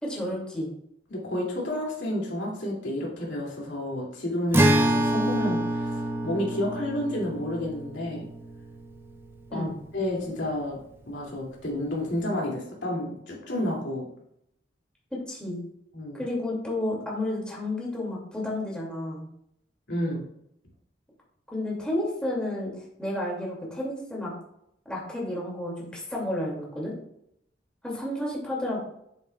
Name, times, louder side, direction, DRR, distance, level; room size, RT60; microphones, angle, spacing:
voice 1, 0.0-0.7 9.5-9.7 15.3-15.6 16.1-19.3 21.5-24.3 24.9-26.9 27.8-28.8, left 1 dB, 5° left, -4 dB, 2.4 m, -31 dB
voice 2, 1.1-8.3 9.5-9.7 9.9-10.8 11.1-14.1 15.9-16.2 19.9-20.2, left 1 dB, 85° left, -3 dB, 2.6 m, -30 dB
Acoustic guitar, 4.5-10.0, right 1 dB, 15° right, 0.6 m, -27 dB
9.6 x 7.2 x 2.4 m, 0.74 s
head